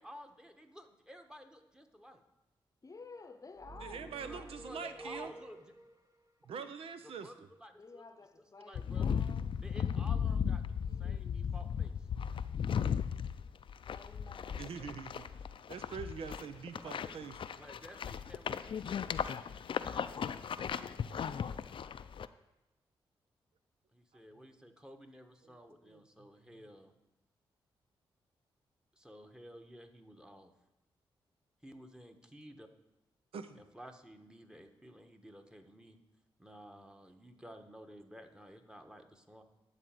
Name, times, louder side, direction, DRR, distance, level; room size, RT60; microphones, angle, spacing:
voice 1, 0.0-2.2 4.1-5.7 7.0-8.0 8.4-9.2 9.6-12.1 14.5-14.7 16.8-17.2 17.6-18.9 23.9-26.9 28.9-30.5 31.6-32.7 33.5-36.0 36.4-39.4, equal, 10° right, 1.3 m, -53 dB
voice 2, 2.8-4.7 7.8-9.5 10.8-11.5 13.9-14.7 20.7-21.6, left 4 dB, 35° left, 0.8 m, -54 dB
sound 1, 3.6-6.0, right 1 dB, 35° right, 1.2 m, -50 dB
voice 3, 3.8-5.3 6.4-7.3 14.6-15.3 15.7-17.3 25.8-26.0 33.3-33.6, right 6 dB, 75° right, 0.7 m, -44 dB
sound 2, 8.8-22.3, left 7 dB, 60° left, 0.4 m, -36 dB
12.0 x 4.1 x 7.7 m
cardioid pair, 55°, 10 cm